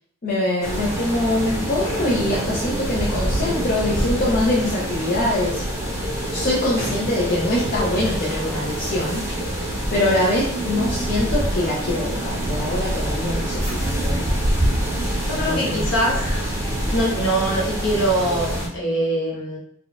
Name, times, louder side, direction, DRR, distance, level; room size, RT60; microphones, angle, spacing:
voice 1, 0.2-5.6 6.3-9.2 9.5-14.3 15.5-16.0, left 1 dB, 45° left, -6 dB, 0.5 m, -24 dB
sound 1, 0.6-18.7, right 1 dB, 15° right, 0.7 m, -25 dB
voice 2, 15.3-16.1 16.9-19.6, right 1 dB, 60° left, -4 dB, 0.9 m, -23 dB
4.1 x 2.3 x 2.3 m, 0.69 s
head